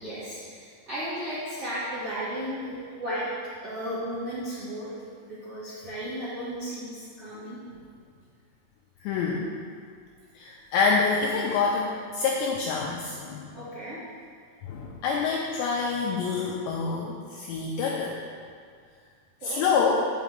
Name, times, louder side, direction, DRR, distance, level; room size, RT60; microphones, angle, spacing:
voice 1, 0.0-3.3 3.6-4.9 5.2-7.6 13.5-14.0 19.4-20.0, equal, 65° right, -12 dB, 1.4 m, -35 dB
voice 2, 9.0-9.5 10.4-13.6 14.6-18.2 19.4-20.0, left 5 dB, 90° left, -2 dB, 2.5 m, -27 dB
6.1 x 6.1 x 7.3 m, 2.1 s
omnidirectional pair, 5.8 m